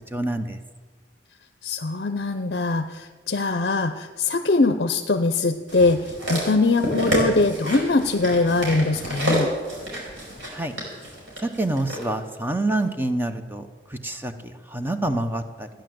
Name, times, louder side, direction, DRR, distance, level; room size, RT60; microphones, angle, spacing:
voice 1, 0.1-0.6 10.5-10.7 11.4-15.7, right 2 dB, 10° right, 7 dB, 0.8 m, -27 dB
voice 2, 1.6-9.5, left 3 dB, 60° left, 7 dB, 0.6 m, -22 dB
sound 1, 5.7-12.0 12.8-12.9, equal, 90° right, 5.2 m, -29 dB
15.0 x 10.5 x 7.7 m, 1.5 s
head